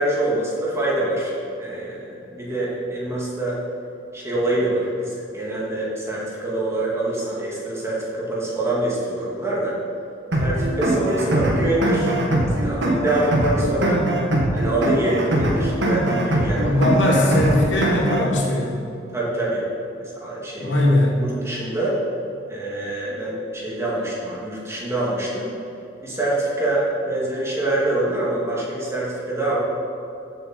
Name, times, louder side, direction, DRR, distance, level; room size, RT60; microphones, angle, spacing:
voice 1, 0.0-3.6 4.1-9.8 10.4-14.0 14.5-16.8 19.1-19.6 20.0-22.0 22.5-25.5 26.0-29.6, right 1 dB, 15° right, -6 dB, 2.7 m, -25 dB
sound 1, 10.3-18.3, right 1 dB, 65° right, 1.9 m, -22 dB
voice 2, 16.6-18.7 20.6-21.2, left 1 dB, 70° left, -2 dB, 2.3 m, -19 dB
14.0 x 7.9 x 4.6 m, 2.8 s
head